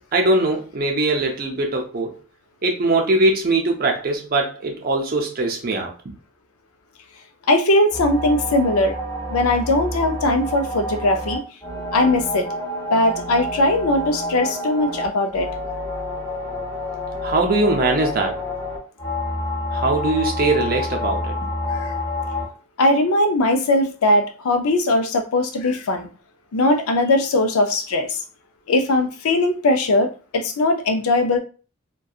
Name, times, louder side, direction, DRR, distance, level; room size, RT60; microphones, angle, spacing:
voice 1, 0.0-2.1 2.6-6.1 17.2-18.4 19.7-21.5, right 2 dB, 45° right, 2 dB, 0.5 m, -21 dB
voice 2, 7.5-8.9 9.3-11.4 11.9-12.5 12.9-15.5 21.7-21.9 22.8-26.1 26.5-28.2 28.7-31.4, left 2 dB, 85° left, 6 dB, 0.5 m, -19 dB
sound 1, 7.9-22.5, left 1 dB, 15° left, 0.7 m, -28 dB
2.7 x 2.2 x 2.3 m, 0.36 s
head